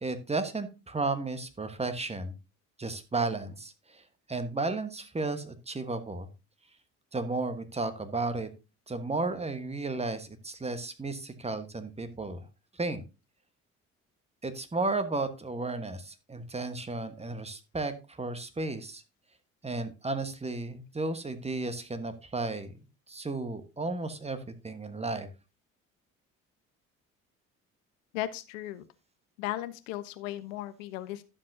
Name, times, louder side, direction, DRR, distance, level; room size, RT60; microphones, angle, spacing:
voice 1, 0.0-2.3 2.8-6.3 7.1-8.5 8.9-12.5 12.7-13.0 14.4-19.0 19.6-22.7 23.1-25.3, right 3 dB, 15° right, 9 dB, 1.3 m, -33 dB
voice 2, 28.1-28.9 29.4-31.2, left 14 dB, 70° left, 13 dB, 0.7 m, -36 dB
11.5 x 7.5 x 2.7 m, 0.28 s
figure-of-eight pair, 50°, 41 cm